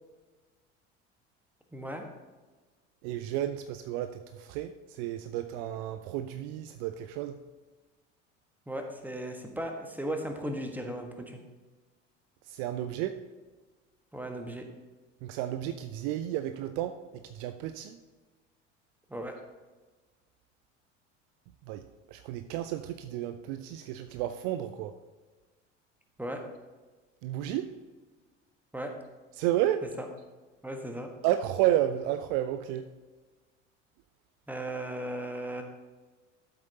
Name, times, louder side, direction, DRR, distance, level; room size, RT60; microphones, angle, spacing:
voice 1, 1.7-2.0 8.7-11.4 14.1-14.7 19.1-19.4 26.2-26.4 28.7-28.9 30.0-30.1 30.6-31.1 34.5-35.6, right 1 dB, 5° right, 4 dB, 1.4 m, -36 dB
voice 2, 3.0-7.4 12.5-13.2 15.2-17.0 17.3-18.0 21.7-24.9 27.2-27.7 29.4-29.8 31.2-32.9, right 12 dB, 50° right, 9 dB, 0.6 m, -32 dB
13.0 x 7.7 x 2.9 m, 1.3 s
figure-of-eight pair, 65°, 37 cm